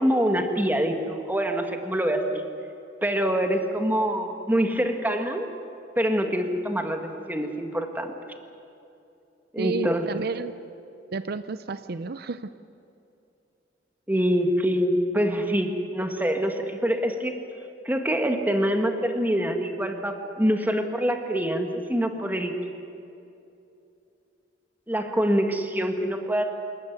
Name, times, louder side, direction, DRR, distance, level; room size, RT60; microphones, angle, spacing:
voice 1, 0.0-2.4 3.0-5.5 6.0-8.1 9.5-10.1 14.1-17.4 17.8-22.5 24.9-26.5, equal, 10° right, 5 dB, 1.8 m, -25 dB
voice 2, 9.6-10.6 11.1-12.5, right 4 dB, 60° right, 12 dB, 0.6 m, -31 dB
26.5 x 14.5 x 9.5 m, 2.7 s
head